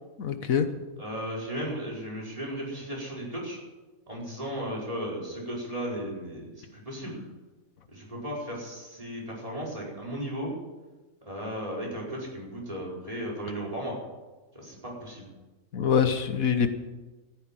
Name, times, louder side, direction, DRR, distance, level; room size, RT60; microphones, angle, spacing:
voice 1, 0.2-0.7 15.7-16.7, left 7 dB, 75° left, 9 dB, 1.5 m, -24 dB
voice 2, 1.0-3.6 4.1-7.2 7.9-10.5 11.2-14.0 14.5-15.3, equal, 25° right, -4 dB, 4.9 m, -35 dB
14.0 x 11.0 x 7.6 m, 1.2 s
omnidirectional pair, 1.5 m